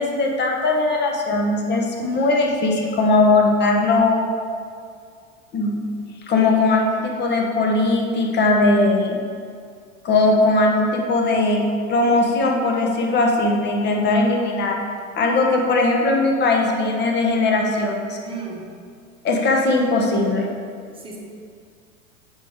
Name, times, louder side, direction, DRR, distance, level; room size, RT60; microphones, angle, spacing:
voice 1, 0.0-4.2 5.5-5.8 6.3-9.2 10.0-14.8 15.2-18.2 19.2-20.5, left 2 dB, 25° left, 1 dB, 1.1 m, -19 dB
voice 2, 18.2-18.7 20.9-21.2, right 4 dB, 15° right, -1 dB, 1.2 m, -34 dB
9.6 x 4.9 x 3.5 m, 2.2 s
figure-of-eight pair, 90°, 41 cm